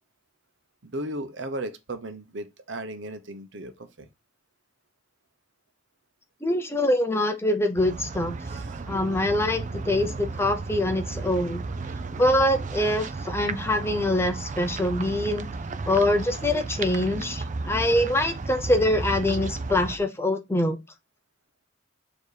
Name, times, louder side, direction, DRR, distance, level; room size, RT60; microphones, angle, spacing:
voice 1, 0.8-4.1 8.4-8.8 9.9-10.0, right 1 dB, 65° right, 0.9 m, -36 dB
voice 2, 6.4-8.4 8.9-11.6 12.2-15.5 15.9-20.8, left 1 dB, 15° left, 0.7 m, -24 dB
sound 1, 7.8-20.0, right 3 dB, 40° right, 0.5 m, -34 dB
7.0 x 3.0 x 4.9 m
head